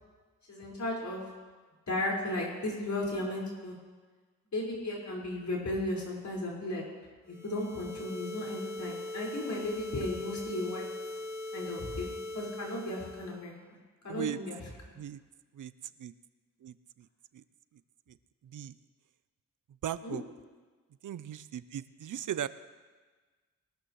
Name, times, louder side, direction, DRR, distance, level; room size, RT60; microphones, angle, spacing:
voice 1, 0.5-1.2 1.9-3.8 4.5-6.8 7.4-10.9 11.5-13.5 14.0-14.6 20.0-20.2, left 1 dB, 60° left, -4 dB, 5.0 m, -35 dB
sound 1, 7.3-13.4, left 2 dB, 10° right, 3.7 m, -40 dB
voice 2, 19.8-20.2 21.0-22.5, right 10 dB, 70° right, 15 dB, 0.6 m, -37 dB
21.5 x 13.0 x 3.1 m, 1.4 s
cardioid pair, 60°, 32 cm